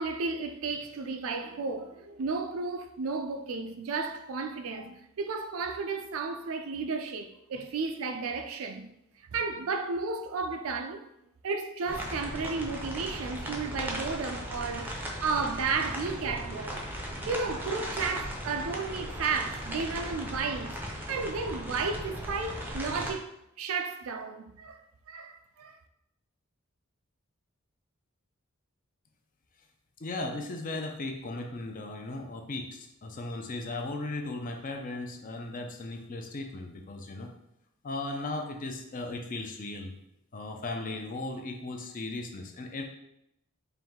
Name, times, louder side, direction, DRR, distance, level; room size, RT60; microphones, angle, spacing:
voice 1, 0.0-8.9 9.3-11.1 11.4-16.8 17.3-23.3 23.6-24.8 25.1-25.7, right 4 dB, 70° right, 0.4 m, -33 dB
sound 1, 11.9-23.1, equal, 10° right, 0.6 m, -37 dB
voice 2, 30.0-37.3 37.8-39.9 40.3-42.8, left 2 dB, 40° left, 0.5 m, -37 dB
4.5 x 2.6 x 3.6 m
head